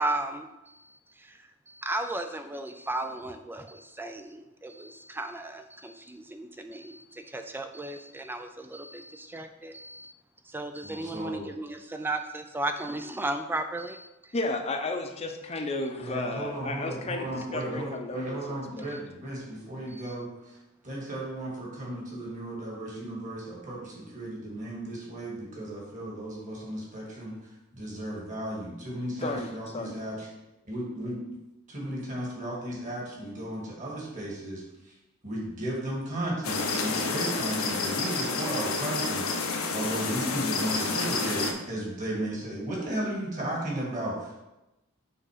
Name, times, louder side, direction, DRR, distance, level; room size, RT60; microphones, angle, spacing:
voice 1, 0.0-1.4 1.7-10.1 10.5-14.3 19.9-20.0, right 2 dB, 10° right, 6 dB, 0.3 m, -35 dB
voice 2, 10.8-11.5 16.0-20.6 20.8-30.3 30.7-31.2 31.7-34.9 35.2-44.4, right 1 dB, 35° right, -4 dB, 2.0 m, -35 dB
voice 3, 14.3-18.9 29.2-29.9, left 2 dB, 30° left, 4 dB, 0.6 m, -33 dB
sound 1, 36.4-41.5, left 4 dB, 80° left, 0.8 m, -29 dB
6.7 x 3.6 x 5.0 m, 0.97 s
head